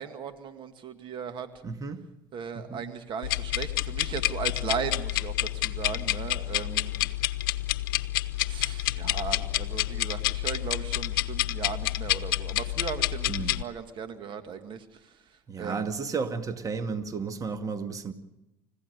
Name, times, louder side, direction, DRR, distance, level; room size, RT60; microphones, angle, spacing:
voice 1, 0.0-1.5 2.3-6.9 8.5-16.0, right 7 dB, 45° right, 2.0 m, -37 dB
voice 2, 1.6-2.1 2.6-2.8 13.3-13.5 15.5-18.1, right 5 dB, 30° right, 2.1 m, -33 dB
sound 1, 3.2-13.6, left 16 dB, 75° left, 0.8 m, -29 dB
29.5 x 16.0 x 6.7 m
hypercardioid pair, 75°, 11 cm